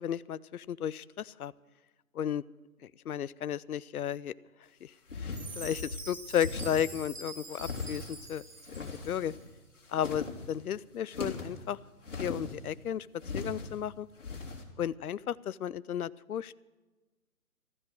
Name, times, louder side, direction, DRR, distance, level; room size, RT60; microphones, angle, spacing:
voice 1, 0.0-1.5 2.1-2.4 3.1-4.3 4.8-4.9 5.2-8.4 8.8-9.3 9.9-11.8 12.2-13.1 13.3-14.1 14.8-16.5, left 9 dB, 75° left, 18 dB, 0.6 m, -34 dB
sound 1, 5.1-6.0 6.4-7.0 7.5-8.2 8.7-9.5 9.8-10.5 11.1-11.6 12.0-12.7 13.2-13.7 14.2-14.6, left 3 dB, 55° left, 3.1 m, -39 dB
Chime, 5.3-9.3, right 3 dB, 80° right, 3.2 m, -46 dB
15.0 x 13.5 x 6.1 m, 1.2 s
hypercardioid pair, 170°, 44 cm